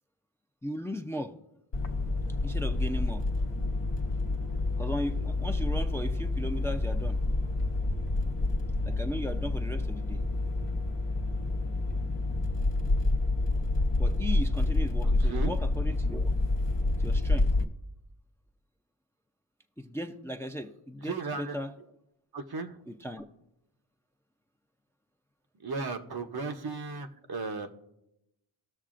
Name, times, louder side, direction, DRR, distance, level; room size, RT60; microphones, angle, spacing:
voice 1, 0.6-1.3 2.4-3.2 4.8-7.2 8.8-10.2 14.0-16.3 17.0-17.5 19.8-21.7 22.9-23.3, equal, 5° left, 4 dB, 0.5 m, -37 dB
sound 1, 1.7-17.6, left 2 dB, 60° left, 0.9 m, -28 dB
voice 2, 15.0-15.5 21.0-21.6 22.3-22.8 25.6-27.7, right 4 dB, 50° right, 6 dB, 0.8 m, -36 dB
19.0 x 6.5 x 2.5 m, 0.87 s
wide cardioid pair, 55°, 48 cm